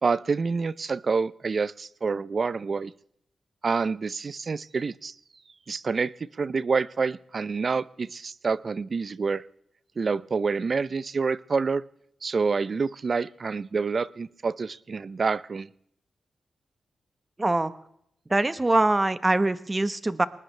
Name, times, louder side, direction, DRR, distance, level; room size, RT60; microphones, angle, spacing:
voice 1, 0.0-2.9 3.6-5.1 5.7-9.4 10.0-11.8 12.2-15.7, right 4 dB, 50° right, 19 dB, 0.6 m, -27 dB
voice 2, 17.4-17.7 18.3-20.3, right 2 dB, 25° right, 13 dB, 1.2 m, -23 dB
21.5 x 20.0 x 3.3 m, 0.74 s
cardioid pair, 65°, 0 cm